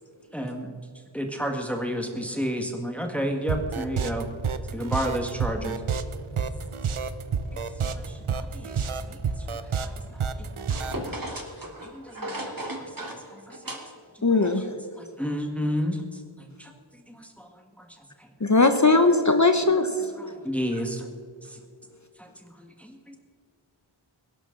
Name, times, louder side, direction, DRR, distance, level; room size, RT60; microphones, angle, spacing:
voice 1, 0.3-0.8 1.1-4.3 4.7-5.8 7.5-7.6 7.9-11.0 11.8-12.4 12.8-12.9 13.3-13.9 14.2-18.3 20.0-21.1 21.4-21.6 22.2-23.2, equal, 5° left, 3 dB, 1.7 m, -33 dB
sound 1, 3.5-11.1, right 6 dB, 85° right, 0.9 m, -29 dB
voice 2, 10.7-13.1 13.6-13.8 14.4-14.6, right 1 dB, 45° right, 0 dB, 3.2 m, -35 dB
voice 3, 14.2-14.6 18.4-19.9, left 3 dB, 35° left, 8 dB, 1.0 m, -19 dB
21.0 x 11.5 x 3.9 m, 2.3 s
wide cardioid pair, 55°, 48 cm